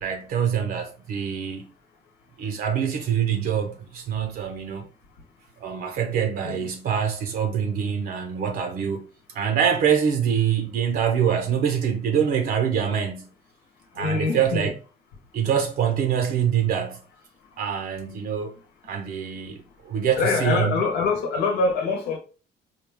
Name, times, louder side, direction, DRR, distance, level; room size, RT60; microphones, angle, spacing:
voice 1, 0.0-1.7 2.4-4.9 5.6-9.1 9.3-13.3 13.9-14.7 15.3-17.0 17.6-18.6 18.8-20.8, right 8 dB, 60° right, 0.6 m, -25 dB
voice 2, 14.0-14.7 20.1-22.2, left 4 dB, 85° left, 1.0 m, -24 dB
4.8 x 2.3 x 3.4 m
cardioid pair, 110°, 17 cm